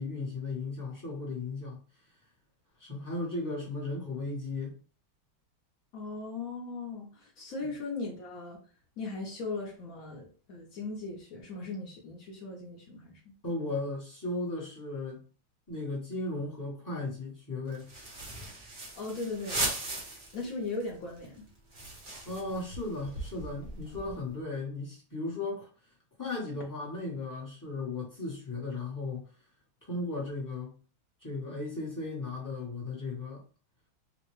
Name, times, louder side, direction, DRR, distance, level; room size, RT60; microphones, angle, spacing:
voice 1, 0.0-1.8 2.8-4.7 13.4-15.2 15.7-17.9 22.2-25.7 26.2-29.3 29.8-30.7 31.2-33.4, left 2 dB, 20° left, 0.5 m, -36 dB
voice 2, 5.9-8.6 9.0-13.3 19.0-19.7 20.3-21.5, left 3 dB, 60° left, 0.9 m, -38 dB
sound 1, 17.7-20.5 20.8-20.9 21.2-24.3, right 2 dB, 50° right, 0.6 m, -38 dB
3.8 x 2.1 x 3.0 m
omnidirectional pair, 2.2 m